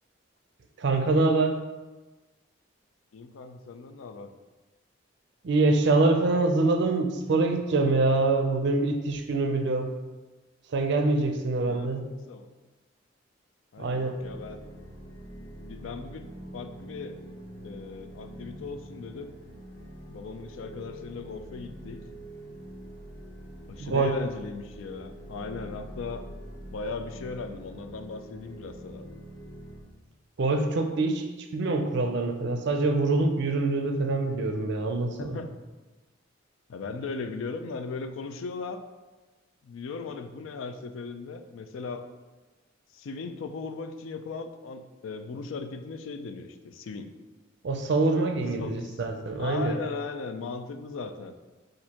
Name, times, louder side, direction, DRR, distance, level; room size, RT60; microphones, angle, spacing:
voice 1, 0.8-1.6 5.4-9.9 10.7-12.1 13.8-14.1 23.8-24.2 30.4-31.3 31.5-35.4 47.6-49.8, right 3 dB, 60° right, 5 dB, 0.5 m, -25 dB
voice 2, 3.1-4.3 11.6-11.9 12.3-12.5 13.7-14.6 15.7-17.2 17.6-19.3 20.1-22.1 23.7-26.3 26.7-29.1 35.2-35.5 36.7-38.8 39.6-42.1 42.9-47.1 48.6-48.9 49.4-51.3, left 4 dB, 90° left, 8 dB, 0.4 m, -38 dB
sound 1, 14.2-29.8, right 1 dB, 70° left, 1.2 m, -44 dB
6.2 x 2.5 x 2.9 m, 1.2 s
head